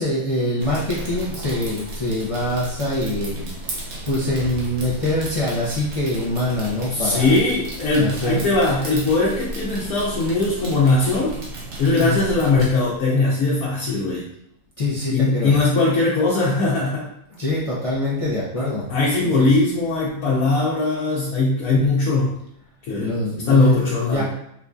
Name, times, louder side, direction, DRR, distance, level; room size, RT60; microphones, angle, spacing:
voice 1, 0.0-7.4 8.0-8.4 11.9-12.2 14.8-15.6 17.3-19.0 19.2-19.5 23.0-24.2, left 1 dB, 50° left, -7 dB, 0.4 m, -24 dB
sound 1, 0.6-12.7, right 1 dB, 60° right, 0.9 m, -34 dB
voice 2, 6.9-11.3 11.8-14.3 15.1-17.1 18.6-22.3 22.8-23.1 23.5-24.2, left 3 dB, 85° left, -5 dB, 1.2 m, -20 dB
4.5 x 2.5 x 2.3 m, 0.74 s
omnidirectional pair, 1.5 m